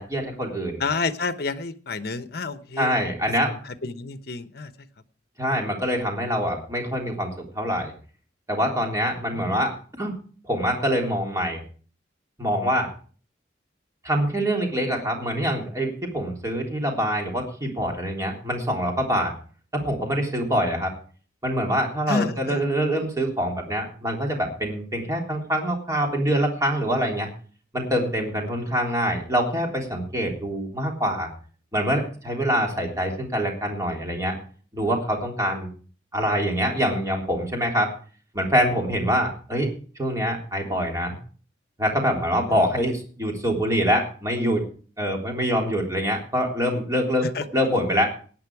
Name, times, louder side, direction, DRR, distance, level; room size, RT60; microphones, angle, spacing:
voice 1, 0.0-0.8 2.8-3.5 5.4-7.3 7.6-7.9 8.5-10.1 10.5-11.6 12.4-12.9 14.0-19.3 19.7-20.9 21.4-27.3 27.7-31.3 31.7-34.4 34.7-35.7 36.1-37.9 38.3-39.7 40.0-41.2 41.8-44.6 45.0-47.3 47.5-48.1, equal, 15° right, 1 dB, 3.5 m, -25 dB
voice 2, 0.8-3.0 3.6-4.7 9.1-9.6 22.1-22.6 42.5-42.6 47.2-47.5, left 4 dB, 55° left, 12 dB, 1.0 m, -29 dB
17.5 x 9.7 x 4.8 m, 0.41 s
head